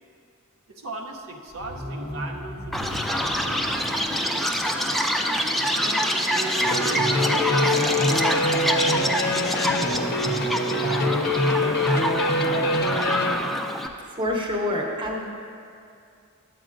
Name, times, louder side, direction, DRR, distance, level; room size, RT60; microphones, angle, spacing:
voice 1, 0.7-5.1 5.6-10.4 10.8-13.2, right 2 dB, 70° right, 0 dB, 0.7 m, -39 dB
sound 1, 1.5-6.2 6.5-6.6, equal, 90° right, 1.3 m, -39 dB
Chirp tweet, 2.7-13.9, equal, ahead, 0.3 m, -26 dB
sound 2, 6.6-13.3, left 1 dB, 45° left, 0.6 m, -24 dB
voice 2, 14.1-15.2, left 1 dB, 25° right, -1 dB, 0.9 m, -26 dB
11.5 x 8.2 x 2.6 m, 2.4 s
head